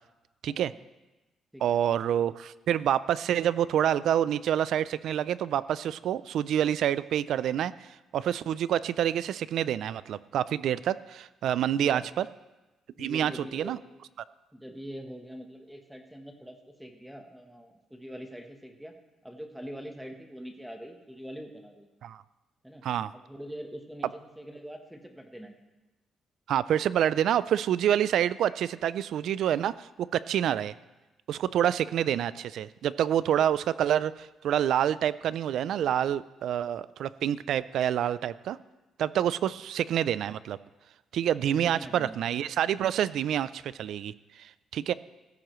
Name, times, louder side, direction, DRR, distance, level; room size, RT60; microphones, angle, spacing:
voice 1, 1.6-7.7 8.1-12.2 13.0-13.8 22.0-22.2 22.8-23.1 26.5-30.7 31.3-38.6 39.0-40.6 41.1-44.9, right 10 dB, 65° right, 17 dB, 0.3 m, -27 dB
voice 2, 11.8-12.1 13.0-13.8 14.5-19.0 19.2-21.9 22.6-22.8 23.1-25.5 39.4-39.5 41.4-42.1, equal, 5° right, 4 dB, 1.1 m, -43 dB
15.5 x 13.5 x 3.1 m, 1.1 s
cardioid pair, 155°, 0 cm